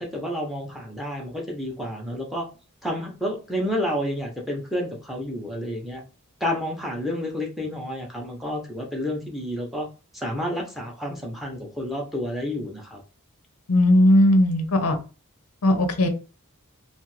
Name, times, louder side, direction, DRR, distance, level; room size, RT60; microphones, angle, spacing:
voice 1, 0.0-2.5 2.8-6.0 6.4-9.9 10.1-13.0, equal, ahead, 0 dB, 0.6 m, -30 dB
voice 2, 13.7-15.0 15.6-16.1, left 1 dB, 80° left, 7 dB, 0.6 m, -18 dB
2.6 x 2.4 x 3.2 m, 0.33 s
head